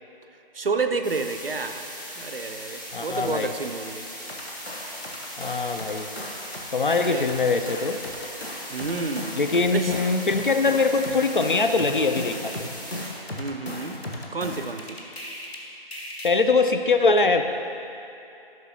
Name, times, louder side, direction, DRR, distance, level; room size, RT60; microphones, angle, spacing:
voice 1, 0.5-1.9 2.1-4.1 7.1-7.3 8.7-9.4 9.7-9.9 13.4-14.0 14.3-15.0, right 4 dB, 65° right, 8 dB, 0.6 m, -30 dB
sound 1, 1.0-13.1, equal, 20° left, 0.7 m, -39 dB
voice 2, 2.9-3.5 5.4-6.1 6.7-8.0 9.3-12.7 16.2-17.4, left 3 dB, 55° left, 7 dB, 0.5 m, -22 dB
sound 2, 4.3-6.6 6.9-15.6 15.9-16.3, left 1 dB, 90° left, 1.4 m, -37 dB
12.5 x 6.0 x 3.0 m, 2.9 s
figure-of-eight pair, 160°, 30 cm